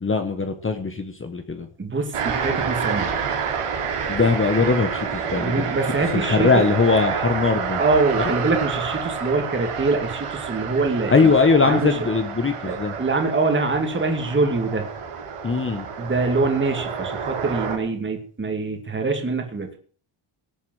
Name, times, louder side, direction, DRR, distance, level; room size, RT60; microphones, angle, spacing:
voice 1, 0.0-1.7 4.1-5.7 6.1-7.8 8.2-8.3 11.1-12.9 15.4-15.8, left 4 dB, 25° left, 7 dB, 1.3 m, -20 dB
voice 2, 1.8-3.1 4.6-4.7 5.3-6.6 7.8-11.3 11.7-11.9 12.6-14.9 16.0-19.8, right 3 dB, 25° right, 4 dB, 2.5 m, -24 dB
sound 1, 2.1-17.8, right 6 dB, 85° right, 4.1 m, -29 dB
17.5 x 8.4 x 7.8 m, 0.43 s
wide cardioid pair, 180°, 50 cm